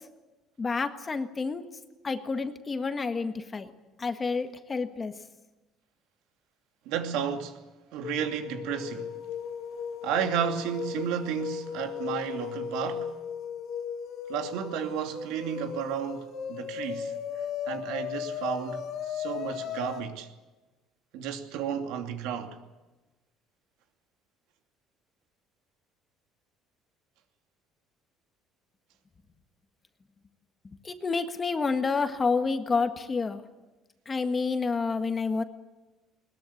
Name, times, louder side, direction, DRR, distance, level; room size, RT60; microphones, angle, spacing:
voice 1, 0.6-1.6 2.0-3.7 4.0-5.1 30.8-33.4 34.0-35.4, left 4 dB, 20° left, 1.6 m, -29 dB
voice 2, 6.9-7.6 7.9-9.2 10.0-13.1 14.3-17.2 17.7-20.3 21.1-22.6, right 8 dB, 85° right, 2.6 m, -32 dB
sound 1, 8.0-20.0, left 7 dB, 50° left, 3.2 m, -36 dB
21.5 x 21.0 x 8.7 m
cardioid pair, 155°, 0 cm